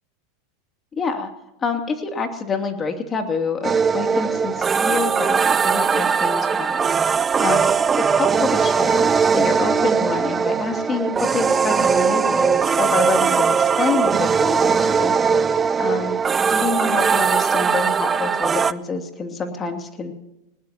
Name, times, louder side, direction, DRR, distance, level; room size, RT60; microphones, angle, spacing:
voice 1, 0.9-1.3 1.6-6.8 7.4-7.7 8.1-9.1 9.3-15.1 15.8-16.2 16.5-20.1, left 4 dB, 25° left, 5 dB, 2.7 m, -27 dB
sound 1, 3.6-18.7, right 6 dB, 25° right, 0.6 m, -19 dB
21.0 x 19.5 x 2.9 m, 0.91 s
hypercardioid pair, 95°, 0 cm